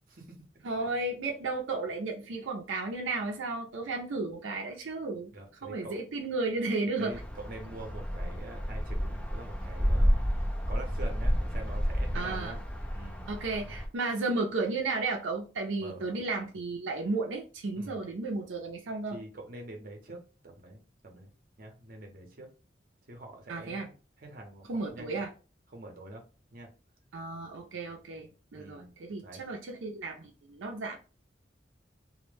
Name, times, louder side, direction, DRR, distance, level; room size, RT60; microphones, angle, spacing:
voice 1, 0.6-5.3 5.6-7.1 12.1-12.6 13.3-19.2 23.5-23.9 24.6-25.3 27.1-31.0, right 3 dB, 90° right, 0.5 m, -33 dB
voice 2, 5.3-6.0 7.0-12.6 12.9-13.3 15.8-16.2 17.7-18.0 19.1-21.3 21.6-22.5 23.1-23.9 24.2-25.2 25.7-26.2 26.5-26.7 28.6-28.9 29.2-29.4, right 2 dB, 50° right, 0.6 m, -45 dB
sound 1, 7.1-13.9, equal, 5° left, 0.3 m, -30 dB
2.1 x 2.1 x 3.1 m
head